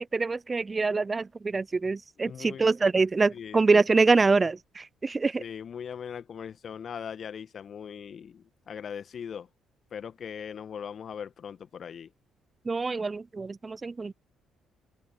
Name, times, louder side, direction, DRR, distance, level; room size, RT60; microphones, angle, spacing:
voice 1, 0.0-5.4 12.7-14.1, right 4 dB, 30° right, 0.7 m, -25 dB
voice 2, 2.2-2.7 3.3-3.6 5.4-9.5 9.9-12.1, left 7 dB, 50° left, 1.8 m, -40 dB
open air
figure-of-eight pair, 45°, 0 cm